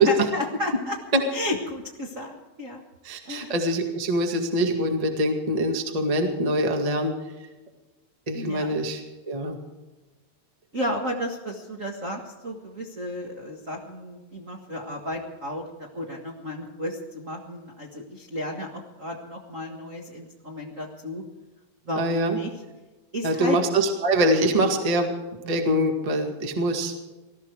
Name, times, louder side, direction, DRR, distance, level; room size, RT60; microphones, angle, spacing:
voice 1, 0.0-1.0 1.3-2.8 3.2-3.5 8.3-8.8 10.7-21.2 21.8-22.5 23.1-23.6, left 1 dB, 45° right, -1 dB, 1.0 m, -33 dB
voice 2, 3.0-7.1 8.3-9.6 21.9-22.4 23.2-25.1 25.4-27.0, right 1 dB, 25° right, 4 dB, 0.8 m, -24 dB
19.0 x 14.0 x 4.7 m, 1.1 s
omnidirectional pair, 4.2 m